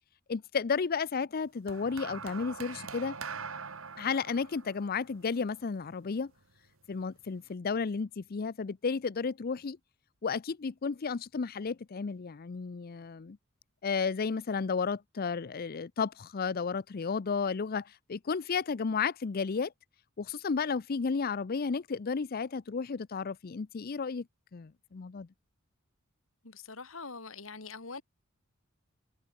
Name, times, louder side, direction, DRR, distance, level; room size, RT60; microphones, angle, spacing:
voice 1, 0.3-3.2 4.0-6.3 6.9-9.8 10.2-13.4 13.8-19.7 20.2-24.3 24.5-25.3, left 5 dB, 45° left, 0.5 m, -33 dB
sound 1, 1.7-6.1 7.0-7.3, right 5 dB, 70° right, 1.9 m, -43 dB
voice 2, 26.4-28.0, left 4 dB, 70° left, 2.2 m, -43 dB
head